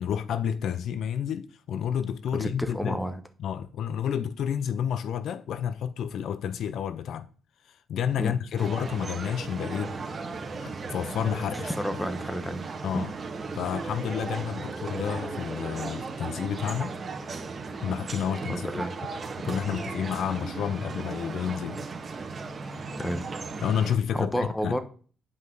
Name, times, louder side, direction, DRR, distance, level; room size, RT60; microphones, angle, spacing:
voice 1, 0.0-3.0 3.4-7.3 7.7-10.0 10.6-11.7 12.8-13.1 13.5-17.0 17.8-18.7 19.4-21.9 23.6-24.8, left 8 dB, 70° left, 0.5 m, -30 dB
voice 2, 2.4-3.2 8.2-8.3 11.4-12.6 12.9-13.1 18.5-18.9 19.7-19.8 23.0-23.2 24.1-24.8, equal, 5° left, 1.1 m, -31 dB
sound 1, 8.6-24.0, right 4 dB, 35° right, 1.8 m, -36 dB
9.8 x 5.3 x 3.9 m
cardioid pair, 90°, 0 cm